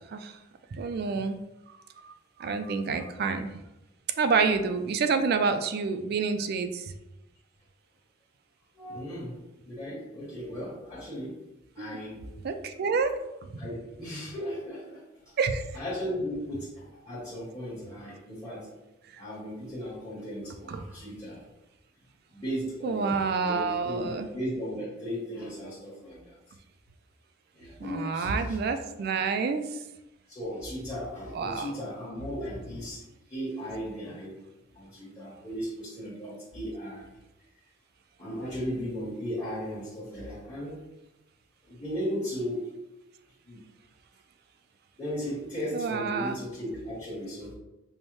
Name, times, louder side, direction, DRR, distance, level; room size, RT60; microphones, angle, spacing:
voice 1, 0.7-1.4 2.0-2.1 2.4-3.5 4.2-6.9 11.8-11.9 12.4-13.1 15.4-15.6 20.7-20.8 22.8-24.3 27.8-29.6 31.3-31.7 45.7-46.4, right 5 dB, 55° right, 8 dB, 0.3 m, -28 dB
voice 2, 8.7-11.4 11.7-12.3 13.6-15.4 15.7-18.7 19.2-21.4 22.3-26.4 27.5-28.6 30.3-33.0 33.3-34.4 34.7-37.1 38.2-40.8 41.6-42.7 43.5-43.6 45.0-47.5, equal, 15° left, -9 dB, 1.0 m, -36 dB
5.3 x 2.1 x 3.0 m, 0.94 s
head